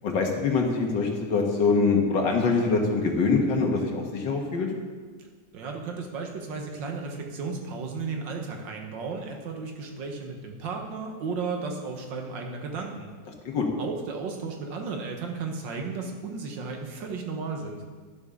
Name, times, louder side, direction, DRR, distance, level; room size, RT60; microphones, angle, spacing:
voice 1, 0.0-4.7 13.5-13.7, left 4 dB, 90° left, 2 dB, 2.1 m, -24 dB
voice 2, 5.5-13.1 13.8-17.8, right 4 dB, 90° right, 3 dB, 1.9 m, -34 dB
11.5 x 11.0 x 3.7 m, 1.5 s
omnidirectional pair, 1.9 m